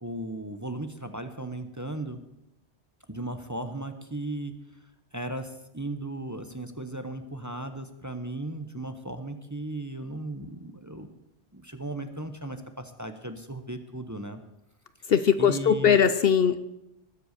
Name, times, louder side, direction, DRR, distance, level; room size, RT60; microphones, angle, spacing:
voice 1, 0.0-2.2 3.1-4.6 5.1-11.1 11.5-14.4 15.4-16.0, right 2 dB, 15° right, 7 dB, 0.9 m, -36 dB
voice 2, 15.1-16.6, left 7 dB, 60° left, 12 dB, 0.9 m, -20 dB
20.5 x 7.9 x 6.6 m, 0.86 s
omnidirectional pair, 1.2 m